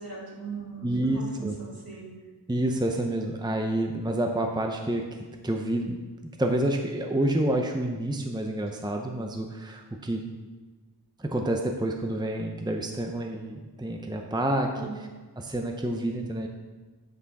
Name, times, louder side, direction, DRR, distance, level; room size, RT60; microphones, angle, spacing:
voice 1, 0.0-2.1 14.8-14.9, right 5 dB, 60° right, -6 dB, 3.1 m, -38 dB
voice 2, 0.8-1.6 2.5-6.0 6.4-10.3 11.2-15.1 15.4-16.5, right 1 dB, 10° right, 3 dB, 0.7 m, -28 dB
8.1 x 8.1 x 4.2 m, 1.3 s
wide cardioid pair, 50°, 40 cm